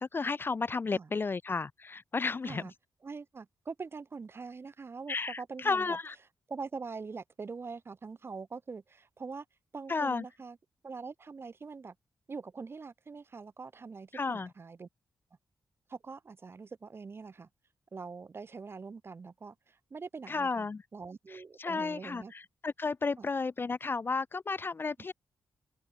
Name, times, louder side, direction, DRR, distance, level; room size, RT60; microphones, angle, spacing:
voice 1, 0.0-2.6 5.1-6.1 9.9-10.2 14.1-14.5 20.3-20.8 21.6-25.1, left 4 dB, 30° left, 0.3 m, -33 dB
voice 2, 3.0-6.0 6.5-9.5 9.7-10.6 10.8-11.9 12.3-14.9 15.9-17.5 17.9-22.3 23.2-23.3, right 4 dB, 35° right, 0.5 m, -43 dB
open air
wide cardioid pair, 105°, 7 cm